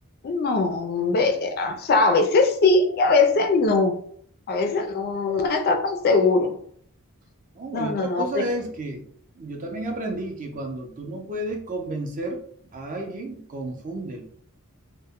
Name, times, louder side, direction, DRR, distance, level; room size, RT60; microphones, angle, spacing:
voice 1, 0.2-3.9 4.5-6.6 7.7-8.4, left 3 dB, 45° left, 6 dB, 0.3 m, -21 dB
voice 2, 7.5-9.0 9.4-12.4 12.7-14.2, right 1 dB, 35° right, 2 dB, 0.5 m, -31 dB
2.1 x 2.1 x 3.5 m, 0.62 s
head